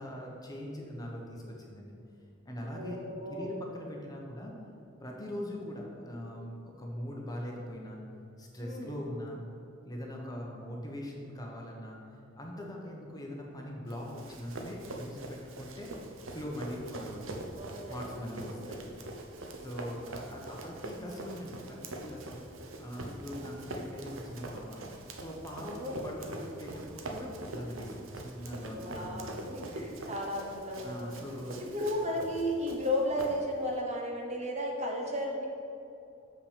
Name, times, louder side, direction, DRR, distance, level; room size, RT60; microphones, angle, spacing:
voice 1, 0.0-1.9 2.4-3.0 3.3-4.5 5.0-8.0 8.4-9.4 9.8-12.0 12.4-15.9 16.3-17.4 17.9-18.8 19.5-24.8 25.1-25.7 26.0-29.5 30.8-31.8, equal, 20° left, -1 dB, 1.1 m, -41 dB
voice 2, 2.7-3.5 8.6-9.0 17.6-18.2 18.6-18.9 25.6-26.1 28.7-31.2 31.6-35.5, left 1 dB, 35° right, 0 dB, 1.0 m, -34 dB
Run, 13.9-33.7, right 2 dB, 70° right, 0.8 m, -43 dB
7.2 x 5.8 x 5.1 m, 2.8 s
head